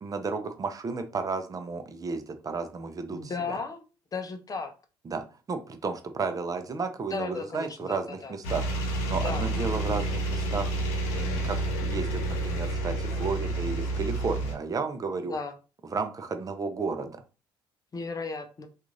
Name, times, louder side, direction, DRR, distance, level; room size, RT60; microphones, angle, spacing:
voice 1, 0.0-3.6 5.1-8.6 9.1-10.7 11.1-15.3 15.9-17.2, right 4 dB, 30° right, 8 dB, 0.6 m, -33 dB
voice 2, 3.1-3.8 4.1-4.7 7.1-8.4 9.2-9.5 13.1-13.3 15.3-15.5 17.9-18.7, left 4 dB, 35° left, 7 dB, 0.6 m, -35 dB
sound 1, 8.4-14.5, right 2 dB, 80° left, 0.7 m, -29 dB
2.5 x 2.4 x 3.1 m, 0.33 s
supercardioid pair, 70°, 11 cm